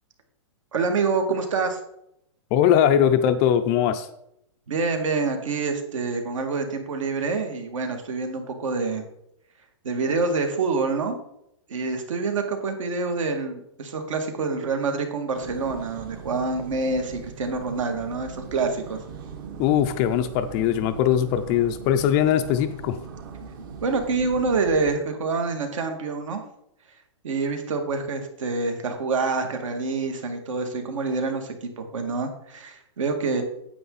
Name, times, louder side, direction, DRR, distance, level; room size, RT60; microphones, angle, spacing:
voice 1, 0.7-1.8 4.7-9.0 9.8-11.2 11.7-19.0 23.8-26.4 27.2-33.4, right 4 dB, 75° right, 5 dB, 2.2 m, -26 dB
voice 2, 2.5-4.1 19.6-23.0, left 10 dB, 20° left, 9 dB, 0.3 m, -21 dB
sound 1, 15.3-25.0, right 6 dB, 40° right, 1.0 m, -40 dB
9.6 x 8.3 x 4.0 m, 0.77 s
hypercardioid pair, 170°, 16 cm